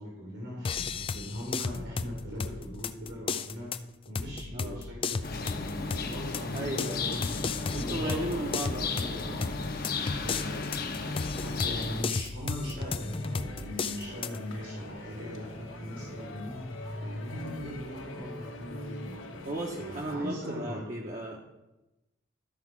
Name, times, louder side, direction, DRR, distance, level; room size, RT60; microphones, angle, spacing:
voice 1, 0.0-3.7 4.0-19.4 19.8-20.8, equal, 85° right, -4 dB, 3.0 m, -40 dB
sound 1, 0.6-14.4, left 5 dB, 25° left, 0.3 m, -35 dB
sound 2, 5.2-12.0, left 4 dB, 50° left, 1.0 m, -34 dB
voice 2, 6.5-7.2 7.7-9.4 19.5-21.5, right 1 dB, 40° right, -2 dB, 0.9 m, -35 dB
sound 3, 13.0-20.2, left 1 dB, 80° left, 1.2 m, -42 dB
13.0 x 4.8 x 6.0 m, 0.99 s
head